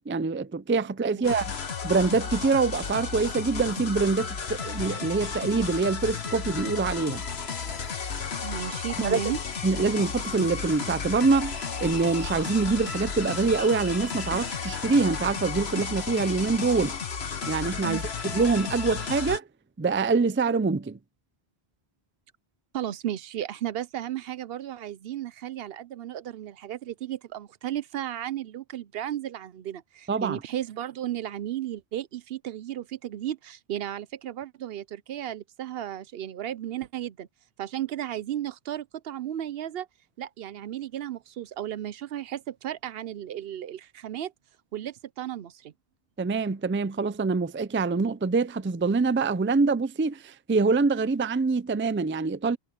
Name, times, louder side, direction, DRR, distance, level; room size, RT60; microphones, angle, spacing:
voice 1, 0.0-1.5 1.8-7.3 9.0-9.2 9.6-16.9 17.5-18.0 18.3-19.4 19.8-21.0 30.1-30.4 46.2-52.6, right 4 dB, 20° right, 0.4 m, -25 dB
sound 1, 1.2-19.4, left 5 dB, 85° left, 1.5 m, -33 dB
voice 2, 8.4-9.4 17.8-18.0 22.7-37.3 37.6-39.9 40.2-44.3 44.7-45.7, right 11 dB, 70° right, 0.8 m, -34 dB
omnidirectional pair, 1.0 m